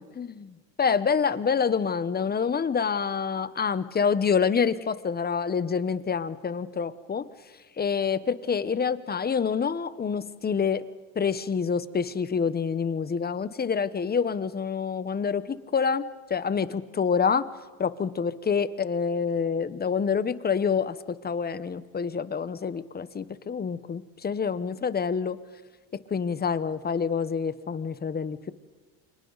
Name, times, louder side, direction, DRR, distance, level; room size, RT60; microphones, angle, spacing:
voice 1, 0.1-7.3 7.8-10.8 11.1-17.5 17.8-25.4 25.9-28.5, left 6 dB, 25° left, 14 dB, 1.1 m, -27 dB
29.0 x 25.5 x 4.1 m, 1.3 s
supercardioid pair, 115°, 41 cm